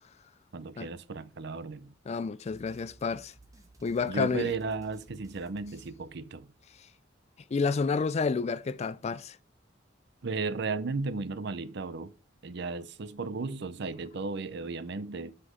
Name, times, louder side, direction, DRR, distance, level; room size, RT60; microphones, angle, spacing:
voice 1, 0.5-1.9 4.0-6.5 10.2-12.1 12.4-15.3, right 4 dB, 60° right, 0.6 m, -35 dB
voice 2, 2.1-3.3 3.8-4.5 7.5-9.4, left 4 dB, 35° left, 0.4 m, -30 dB
sound 1, 2.5-6.7, right 1 dB, 20° right, 1.2 m, -57 dB
8.0 x 5.8 x 3.7 m
head